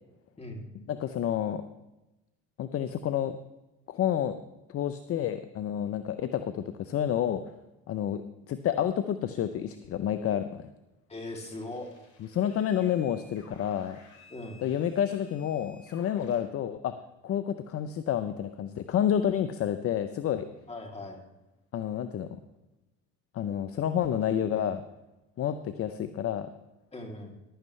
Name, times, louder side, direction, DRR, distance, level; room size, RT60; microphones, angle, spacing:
voice 1, 0.9-1.6 2.6-3.3 3.9-4.4 4.7-7.4 7.9-8.2 8.5-10.6 12.3-14.0 14.6-16.9 17.2-20.5 21.7-22.4 23.3-24.8 25.4-26.5, left 10 dB, 45° left, 11 dB, 0.7 m, -29 dB
voice 2, 11.1-11.9 14.3-14.6 20.7-21.2 26.9-27.3, left 2 dB, 20° left, 2 dB, 3.0 m, -39 dB
sound 1, 11.3-16.4, left 3 dB, 60° left, 3.8 m, -57 dB
15.0 x 12.0 x 3.3 m, 1.0 s
supercardioid pair, 85°, 32 cm